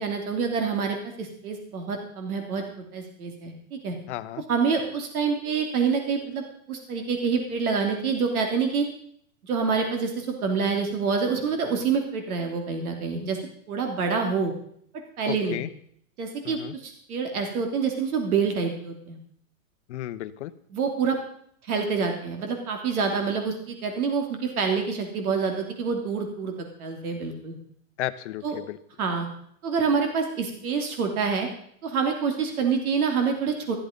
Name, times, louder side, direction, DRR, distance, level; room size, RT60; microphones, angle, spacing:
voice 1, 0.0-4.0 4.5-8.9 9.5-13.4 13.7-14.5 14.9-15.6 16.2-19.2 20.7-21.2 21.6-26.5 26.8-27.6 28.4-28.6 29.0-29.3 29.6-31.5 31.8-33.8, right 5 dB, 75° right, 4 dB, 3.0 m, -27 dB
voice 2, 4.1-4.4 15.3-15.7 16.4-16.7 19.9-20.5 28.0-28.8, left 14 dB, 50° left, 12 dB, 0.9 m, -33 dB
14.0 x 12.0 x 5.2 m, 0.65 s
supercardioid pair, 165°, 43 cm